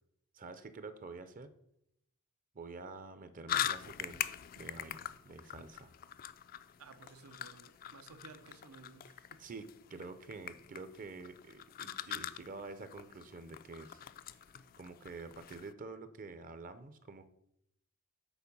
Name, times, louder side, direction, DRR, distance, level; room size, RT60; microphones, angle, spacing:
voice 1, 0.3-1.5 2.5-4.3 4.6-5.9 9.4-14.4 14.7-17.3, right 3 dB, 40° right, 12 dB, 0.6 m, -48 dB
sound 1, 3.5-15.7, left 10 dB, 45° left, 0.3 m, -43 dB
voice 2, 6.8-9.5 10.5-10.6, right 4 dB, 85° right, 10 dB, 0.7 m, -56 dB
7.0 x 4.4 x 5.3 m, 0.76 s
head